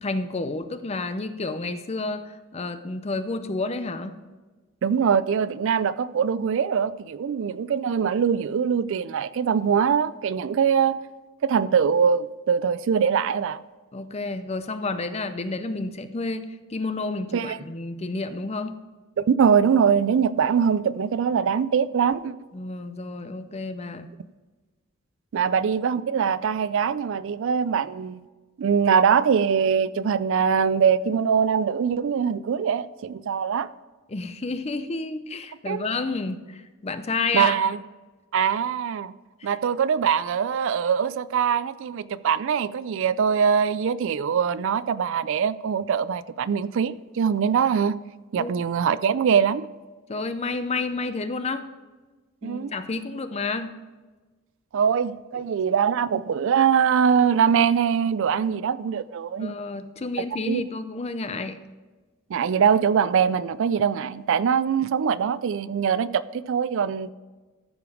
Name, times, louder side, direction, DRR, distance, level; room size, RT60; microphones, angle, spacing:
voice 1, 0.0-4.1 13.9-18.8 22.5-24.1 34.1-37.6 39.4-39.6 48.3-48.5 50.1-51.7 52.4-53.8 55.3-55.5 59.4-61.6, left 3 dB, 30° left, 10 dB, 0.5 m, -30 dB
voice 2, 4.8-11.0 11.4-13.6 17.3-17.6 19.2-22.3 25.3-28.2 28.6-33.7 35.7-35.9 37.3-37.8 38.3-39.1 39.4-48.0 48.3-49.7 52.4-52.7 54.7-59.5 60.5-60.6 62.3-67.1, right 7 dB, 60° right, 17 dB, 0.3 m, -22 dB
14.0 x 5.1 x 4.9 m, 1.3 s
head